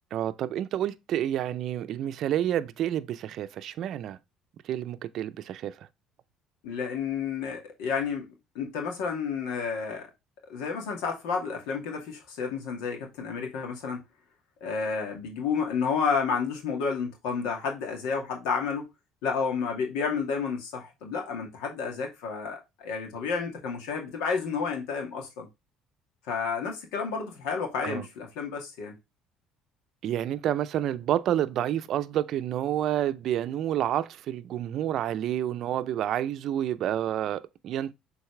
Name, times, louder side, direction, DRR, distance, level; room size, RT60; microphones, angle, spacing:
voice 1, 0.1-4.2 4.7-5.7 27.8-28.0 30.0-37.9, right 11 dB, 60° right, 0.5 m, -29 dB
voice 2, 6.6-8.3 8.5-10.1 10.5-14.0 14.6-18.8 19.2-25.5 26.3-28.9, left 5 dB, 85° left, 2.2 m, -31 dB
7.0 x 4.1 x 3.2 m
cardioid pair, 105°, 0 cm